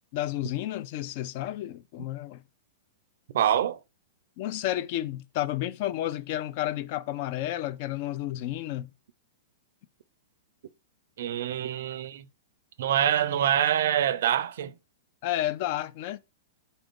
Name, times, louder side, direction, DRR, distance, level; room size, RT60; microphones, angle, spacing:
voice 1, 0.1-2.4 4.4-8.9 15.2-16.2, left 13 dB, 50° left, 0.4 m, -31 dB
voice 2, 3.3-3.8 11.2-12.3 12.8-14.7, right 10 dB, 70° right, 0.4 m, -25 dB
3.9 x 2.5 x 3.6 m
hypercardioid pair, 135°, 0 cm